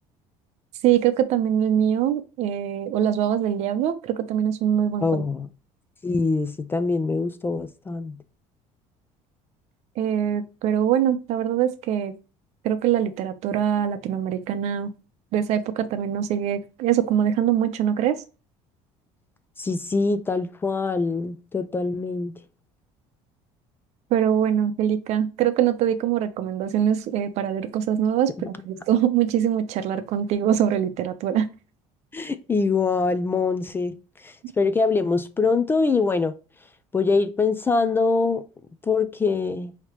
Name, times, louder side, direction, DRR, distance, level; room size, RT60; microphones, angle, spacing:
voice 1, 0.8-5.1 10.0-12.1 12.6-14.9 15.3-18.2 24.1-28.3 28.6-31.5, right 9 dB, 60° right, 0.6 m, -23 dB
voice 2, 5.0-5.5 6.0-8.2 19.6-22.4 28.4-28.5 32.1-34.0 34.2-36.3 36.9-38.4 38.8-39.7, left 4 dB, 15° left, 0.3 m, -24 dB
4.4 x 2.9 x 3.1 m
cardioid pair, 135°, 13 cm